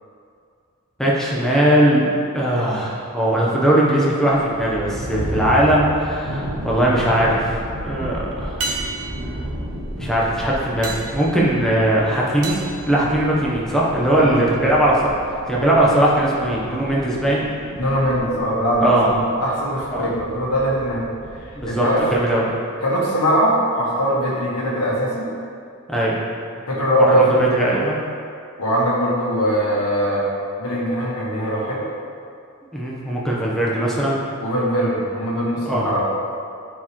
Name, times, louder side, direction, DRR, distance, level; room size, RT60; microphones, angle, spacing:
voice 1, 1.0-2.1 2.3-8.7 10.0-12.5 12.8-15.0 15.5-17.5 18.8-19.1 19.9-20.1 21.6-22.5 25.9-26.1 27.0-28.0 32.7-34.2 35.7-35.9, right 1 dB, ahead, -6 dB, 1.0 m, -19 dB
sound 1, 4.3-22.3, equal, 50° right, 0.9 m, -33 dB
sound 2, 6.3-6.9 8.6-13.8 18.2-18.3, right 3 dB, 85° right, 0.9 m, -34 dB
voice 2, 14.2-14.6 17.8-21.0 21.3-22.1 22.8-25.3 26.7-27.3 28.6-30.3 30.6-31.8 34.4-36.1, equal, 80° left, -5 dB, 1.6 m, -21 dB
9.3 x 4.6 x 3.1 m, 2.4 s
head